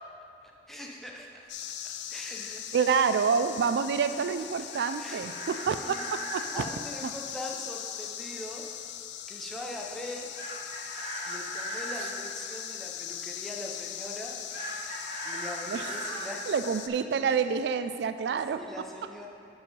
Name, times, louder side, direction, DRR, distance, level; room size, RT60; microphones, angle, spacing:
voice 1, 0.4-3.0 4.6-4.7 5.0-5.3 5.7-6.0 6.5-8.6 9.3-10.3 11.2-14.4 14.7-16.5 18.5-19.3, left 1 dB, ahead, -2 dB, 0.6 m, -42 dB
sound 1, 1.5-16.9, left 10 dB, 80° left, 0.4 m, -40 dB
voice 2, 2.7-6.6 15.7-18.6, right 6 dB, 75° right, 11 dB, 0.3 m, -28 dB
Chicken rooster, 4.7-6.5 10.3-12.1 14.5-16.3, equal, 50° left, 1.7 m, -38 dB
5.6 x 5.3 x 5.3 m, 2.6 s
head